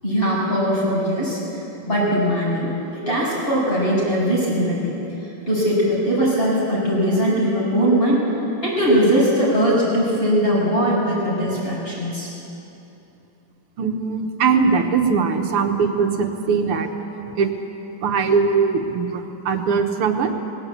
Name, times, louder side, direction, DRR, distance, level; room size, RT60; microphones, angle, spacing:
voice 1, 0.0-1.4 1.8-5.0 5.5-8.3 8.6-12.3, equal, 25° left, -6 dB, 7.6 m, -20 dB
voice 2, 13.8-16.9 17.4-17.5 18.0-20.3, right 5 dB, 85° right, 5 dB, 2.3 m, -20 dB
20.0 x 17.0 x 8.6 m, 2.9 s
omnidirectional pair, 2.4 m